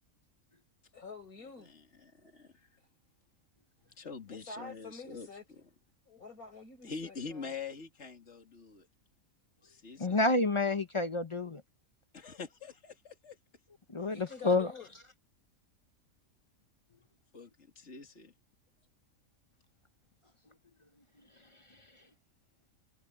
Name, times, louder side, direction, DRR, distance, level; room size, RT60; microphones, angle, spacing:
voice 1, 0.9-1.7 4.3-5.4 6.1-7.6 14.1-14.9, left 4 dB, 80° left, 5.6 m, -47 dB
voice 2, 1.6-2.5 4.0-5.3 6.8-8.9 9.6-10.2 12.1-13.4 14.0-14.2 17.3-18.3, left 5 dB, 50° left, 2.8 m, -45 dB
voice 3, 10.0-11.6 13.9-14.7, left 2 dB, 30° left, 0.6 m, -29 dB
omnidirectional pair, 1.5 m